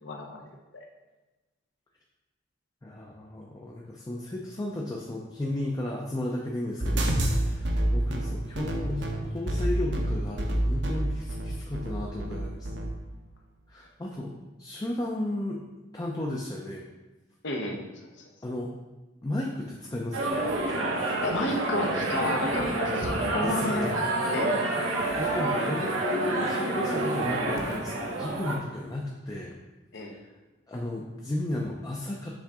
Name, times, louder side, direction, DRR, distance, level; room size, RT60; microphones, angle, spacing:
voice 1, 0.0-0.5 0.7-0.9 17.4-17.8 21.2-23.8 24.3-24.5 29.9-30.1, left 1 dB, 65° left, 1 dB, 0.8 m, -31 dB
voice 2, 2.8-12.9 13.7-15.6 15.9-16.8 18.4-18.7 19.2-20.4 23.4-24.0 25.2-29.6 29.9-30.3 30.7-32.3, left 1 dB, 20° left, -2 dB, 0.5 m, -34 dB
sound 1, 6.8-12.9, right 1 dB, 60° right, 0.8 m, -28 dB
sound 2, 20.1-28.6, right 2 dB, 85° right, 1.1 m, -28 dB
7.3 x 3.8 x 3.5 m, 1.1 s
head